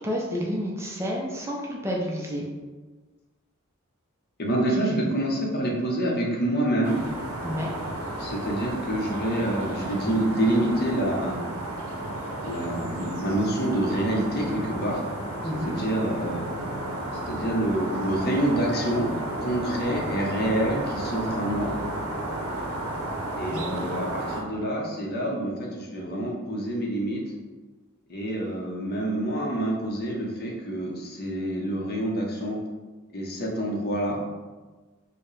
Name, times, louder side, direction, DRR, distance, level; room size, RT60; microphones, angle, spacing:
voice 1, 0.0-2.5 7.4-7.7 15.4-15.7 23.5-23.8, equal, 10° right, -2 dB, 0.4 m, -30 dB
voice 2, 4.4-7.0 8.2-11.4 12.4-15.0 15.6-16.5 17.3-19.1 19.4-21.7 23.4-27.2 28.1-32.6 33.1-34.2, right 1 dB, 45° left, -1 dB, 0.7 m, -27 dB
sound 1, 6.8-24.4, right 1 dB, 70° right, 0.7 m, -32 dB
4.5 x 2.1 x 3.1 m, 1.3 s
head